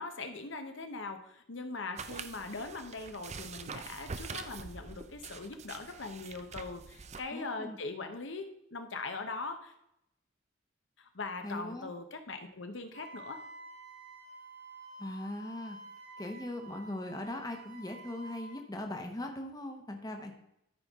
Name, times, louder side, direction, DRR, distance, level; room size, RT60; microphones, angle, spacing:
voice 1, 0.0-9.7 11.0-13.4, left 3 dB, 65° left, 6 dB, 0.9 m, -41 dB
sound 1, 2.0-7.2, right 5 dB, 35° right, 0.5 m, -45 dB
voice 2, 7.3-7.8 11.4-11.9 15.0-15.8 16.2-20.3, left 1 dB, 20° left, 3 dB, 1.0 m, -40 dB
Wind instrument woodwind instrument, 12.9-18.6, right 2 dB, 50° right, 1.1 m, -50 dB
13.0 x 5.4 x 3.6 m, 0.80 s
head